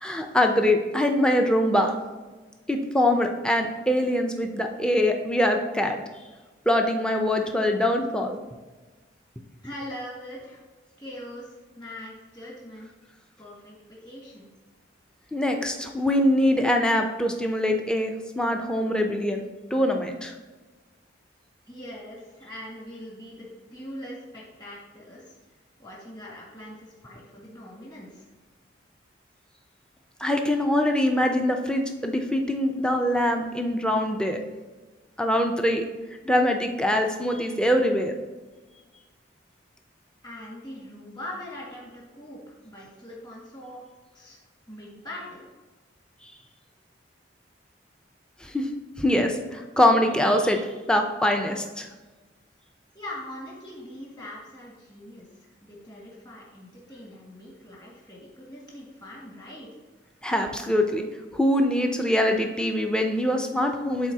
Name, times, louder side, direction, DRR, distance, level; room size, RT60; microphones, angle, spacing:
voice 1, 0.0-1.9 2.7-6.0 6.7-8.4 15.3-19.4 19.7-20.3 30.2-34.4 35.2-35.8 36.2-38.1 48.4-48.7 49.0-51.9 60.2-61.0 61.3-64.1, left 1 dB, 5° left, 3 dB, 0.5 m, -23 dB
voice 2, 9.6-10.6 11.0-12.9 13.4-14.5 21.7-25.4 25.8-28.3 40.2-43.8 44.1-44.4 44.7-45.5 52.9-59.7, left 1 dB, 25° left, -5 dB, 1.9 m, -42 dB
12.0 x 4.1 x 2.8 m, 1.3 s
head